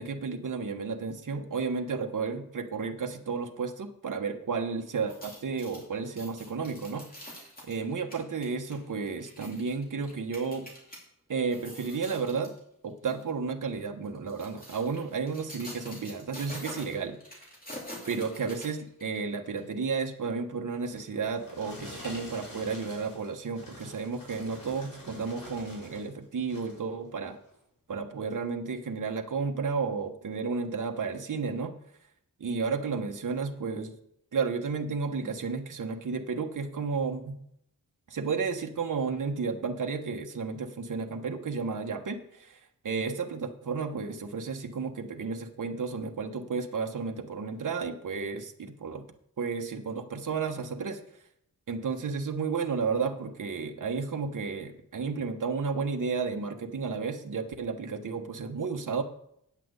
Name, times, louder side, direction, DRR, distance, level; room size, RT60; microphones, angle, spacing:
voice 1, 0.0-7.3 7.6-10.7 11.3-12.5 12.8-17.4 18.1-27.4 27.9-31.7 32.4-33.9 34.3-37.4 38.1-49.0 49.4-51.0 51.7-59.0, right 5 dB, 60° right, 4 dB, 1.2 m, -32 dB
sound 1, 5.0-11.0 11.4-12.6 13.0-13.2 14.0-19.2 19.6-19.7, equal, 25° left, 3.2 m, -46 dB
sound 2, 21.0-26.1 26.4-26.8 27.4-27.6, left 1 dB, 65° left, 5.1 m, -46 dB
9.3 x 5.9 x 8.1 m, 0.73 s
wide cardioid pair, 145°, 35 cm